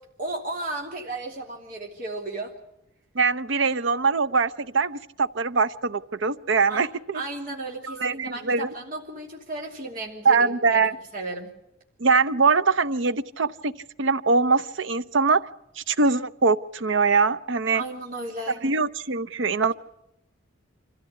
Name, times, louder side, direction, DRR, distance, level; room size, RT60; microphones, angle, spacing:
voice 1, 0.2-2.5 6.7-6.8 7.1-10.8 11.1-11.5 17.7-18.6, right 2 dB, 45° right, -1 dB, 2.9 m, -34 dB
voice 2, 3.1-7.2 7.8-8.7 10.2-11.0 12.0-13.7 14.0-15.5 15.8-17.8 18.6-19.7, right 4 dB, 65° right, 15 dB, 0.7 m, -22 dB
25.0 x 14.5 x 8.3 m, 0.86 s
head